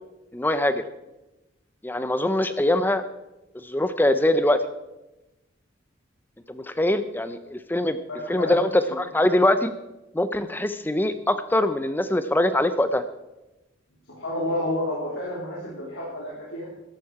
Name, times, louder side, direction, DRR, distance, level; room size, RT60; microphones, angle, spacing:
voice 1, 0.3-0.8 1.8-3.0 3.6-4.6 6.5-8.0 8.3-9.7 10.1-13.0, left 1 dB, 10° left, 11 dB, 0.5 m, -23 dB
voice 2, 8.1-8.6 8.9-9.0 14.1-16.6, left 1 dB, 90° left, -6 dB, 3.3 m, -30 dB
14.0 x 11.5 x 4.8 m, 0.99 s
head